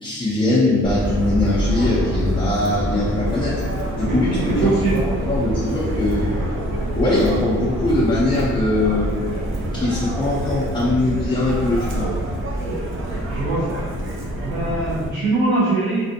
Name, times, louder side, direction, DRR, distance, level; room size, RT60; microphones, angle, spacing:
voice 1, 0.0-3.5 4.0-6.3 6.9-9.1 9.7-12.1, left 2 dB, 15° left, -7 dB, 0.5 m, -21 dB
Subway metro underground, 0.8-15.1, equal, 40° right, 0.5 m, -26 dB
voice 2, 4.0-5.0 6.8-7.0 12.7-12.8 13.3-13.8 14.4-16.0, right 2 dB, 85° right, -8 dB, 0.7 m, -22 dB
2.5 x 2.4 x 2.6 m, 1.5 s
cardioid pair, 90°, 30 cm